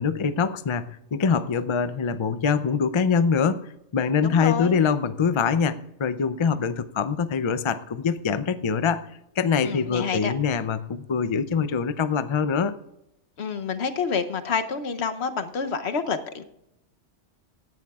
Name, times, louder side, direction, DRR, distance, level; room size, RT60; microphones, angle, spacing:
voice 1, 0.0-9.0 9.4-12.7, left 6 dB, 40° left, 12 dB, 0.4 m, -24 dB
voice 2, 4.2-4.8 9.6-10.3 13.4-16.4, left 5 dB, 65° left, 9 dB, 1.1 m, -28 dB
17.0 x 11.0 x 2.4 m, 0.82 s
omnidirectional pair, 1.2 m